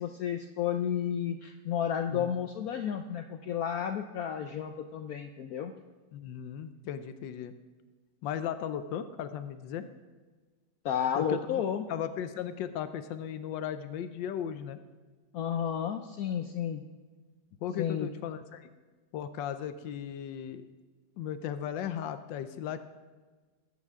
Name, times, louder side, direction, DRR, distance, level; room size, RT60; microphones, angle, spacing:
voice 1, 0.0-5.7 10.8-11.8 15.3-16.8 17.8-18.1, left 8 dB, 65° left, 6 dB, 1.0 m, -32 dB
voice 2, 6.1-7.5 8.2-9.9 11.1-11.6 11.9-14.8 17.6-18.7 19.1-20.6 21.2-22.8, left 9 dB, 90° left, 10 dB, 1.4 m, -36 dB
21.0 x 8.2 x 3.6 m, 1.3 s
omnidirectional pair, 1.9 m